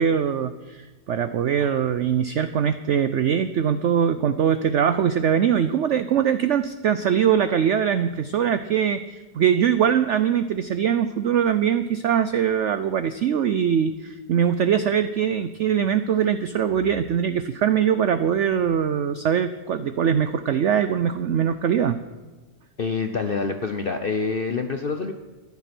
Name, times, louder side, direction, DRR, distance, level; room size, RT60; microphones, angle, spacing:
voice 1, 0.0-22.0, right 8 dB, 80° right, 11 dB, 0.6 m, -22 dB
voice 2, 22.8-25.1, left 4 dB, 55° left, 6 dB, 0.6 m, -26 dB
14.5 x 10.5 x 6.0 m, 1.2 s
omnidirectional pair, 1.9 m